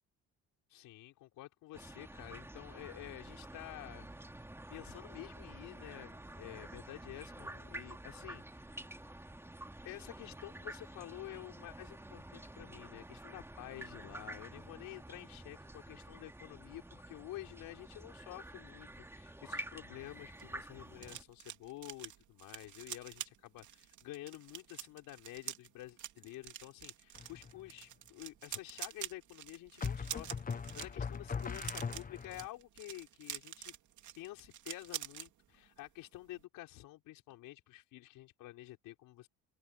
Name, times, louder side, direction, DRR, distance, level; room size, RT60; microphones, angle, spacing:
voice 1, 0.7-4.1 4.7-8.7 9.8-33.7 34.2-39.3, left 16 dB, 80° left, 5.3 m, -50 dB
sound 1, 1.7-21.2, right 1 dB, 5° right, 3.0 m, -49 dB
sound 2, 20.1-35.3 35.6-35.9 36.1-36.4, right 11 dB, 60° right, 2.8 m, -47 dB
sound 3, 27.1-27.7 29.8-32.5, left 6 dB, 25° left, 1.2 m, -40 dB
open air
cardioid pair, 95°, 33 cm